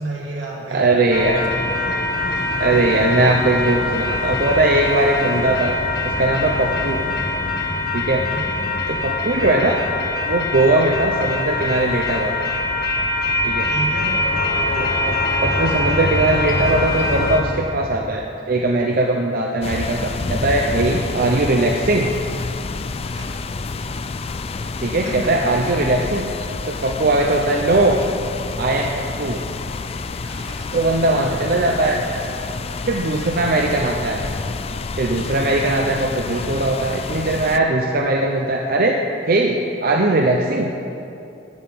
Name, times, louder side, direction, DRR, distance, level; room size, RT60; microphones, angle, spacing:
voice 1, 0.0-0.9 8.3-8.8 13.7-14.2 23.0-23.3 24.9-25.3 30.2-30.8 32.5-32.6 33.1-33.4, right 2 dB, 85° right, -4 dB, 2.6 m, -31 dB
voice 2, 0.7-1.4 2.6-5.8 6.0-7.0 7.9-8.2 8.9-9.8 10.2-12.5 13.4-13.7 14.8-15.2 15.4-22.1 24.8-26.2 26.7-28.0 28.6-29.4 30.7-32.0 32.9-34.2 35.0-39.0 39.3-40.7, right 2 dB, 50° right, 1 dB, 0.7 m, -20 dB
sound 1, 1.1-17.4, left 2 dB, 60° left, 1.3 m, -23 dB
sound 2, 19.6-37.6, left 3 dB, 35° left, 0.4 m, -29 dB
12.5 x 5.7 x 8.6 m, 2.7 s
head